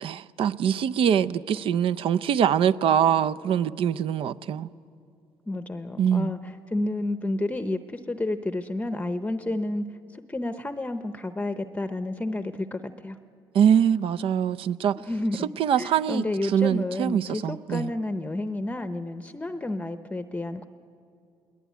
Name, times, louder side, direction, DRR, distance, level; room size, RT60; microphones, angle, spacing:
voice 1, 0.0-4.7 6.0-6.3 13.5-14.9 15.6-16.2 16.5-17.9, right 8 dB, 65° right, 0.6 m, -23 dB
voice 2, 5.5-9.8 10.1-13.2 15.0-20.6, left 2 dB, 15° left, 0.7 m, -30 dB
21.5 x 20.5 x 9.3 m
cardioid pair, 100°, 10 cm